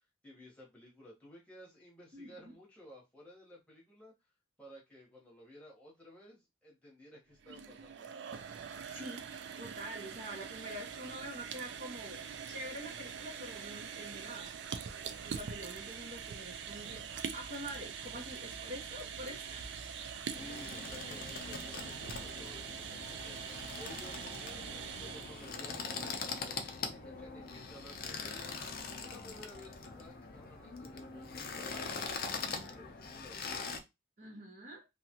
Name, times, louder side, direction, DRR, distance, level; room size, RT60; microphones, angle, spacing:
voice 1, 0.0-4.1 4.6-8.1 20.2-23.4 23.8-28.6 29.0-33.4, left 1 dB, 5° left, -5 dB, 1.1 m, -55 dB
voice 2, 2.1-2.5 8.8-9.3 9.6-14.5 15.2-19.9 34.2-34.8, right 1 dB, 45° right, -3 dB, 0.9 m, -46 dB
sound 1, 7.3-25.6, right 7 dB, 60° right, 0.4 m, -44 dB
sound 2, 20.3-33.8, left 4 dB, 50° left, 0.5 m, -42 dB
2.8 x 2.4 x 2.8 m, 0.22 s
head